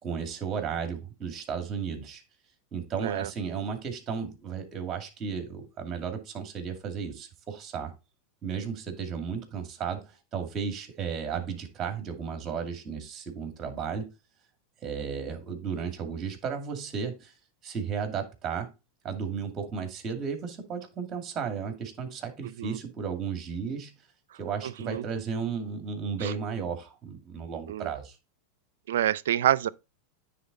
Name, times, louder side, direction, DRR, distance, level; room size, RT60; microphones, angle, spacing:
voice 1, 0.0-2.2 2.7-7.9 8.4-14.1 14.8-17.3 17.6-18.7 19.0-24.0 24.4-28.2, right 6 dB, 30° right, 2.3 m, -34 dB
voice 2, 3.0-3.3 22.6-22.8 24.6-25.1 26.2-26.3 27.7-27.9 28.9-29.7, right 11 dB, 85° right, 0.4 m, -27 dB
9.5 x 3.9 x 4.2 m
hypercardioid pair, 115°, 0 cm